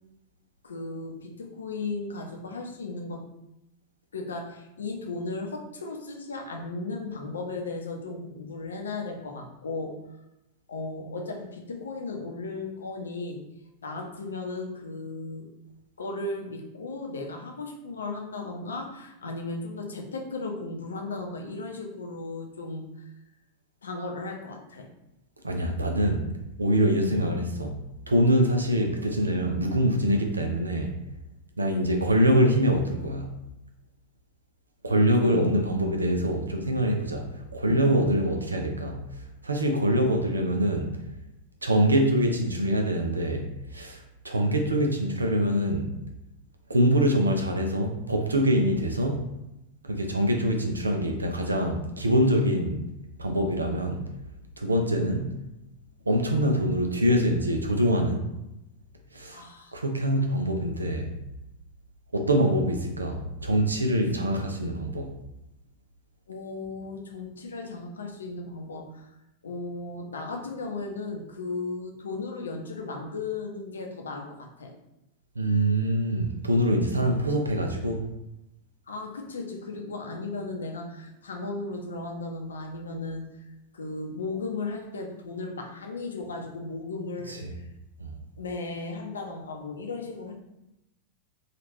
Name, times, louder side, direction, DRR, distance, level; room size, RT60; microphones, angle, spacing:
voice 1, 0.6-3.2 4.1-10.0 10.7-13.4 13.8-15.5 16.0-23.1 23.8-24.9 27.1-27.3 35.2-35.5 59.3-59.7 66.3-69.1 69.4-74.7 78.9-83.4 83.7-87.7 88.4-90.3, left 3 dB, 70° left, 2 dB, 0.6 m, -35 dB
voice 2, 25.4-26.3 26.6-27.7 28.1-31.0 31.6-33.3 34.8-39.0 39.4-41.0 41.6-46.0 46.7-49.3 49.8-52.8 53.2-54.1 54.6-55.3 56.1-58.2 59.1-59.4 59.7-61.2 62.1-65.1 75.4-78.0 87.3-87.5 88.0-88.1, equal, 80° right, 3 dB, 0.5 m, -24 dB
3.1 x 2.4 x 3.0 m, 0.89 s
figure-of-eight pair, 90°, 0 cm